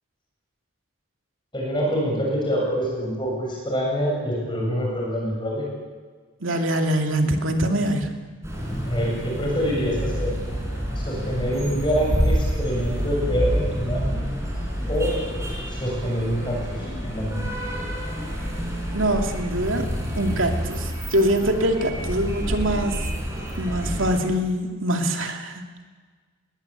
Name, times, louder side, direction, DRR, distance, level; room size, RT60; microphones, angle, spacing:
voice 1, 1.5-5.7 8.8-10.3 11.0-14.1 14.9-15.2 15.7-17.8, equal, 25° left, -2 dB, 7.2 m, -26 dB
voice 2, 6.4-8.1 18.9-23.0 23.6-25.6, right 1 dB, 80° right, 4 dB, 2.5 m, -24 dB
sound 1, 8.4-24.2, equal, 15° right, 4.9 m, -28 dB
21.5 x 19.0 x 8.3 m, 1.5 s
head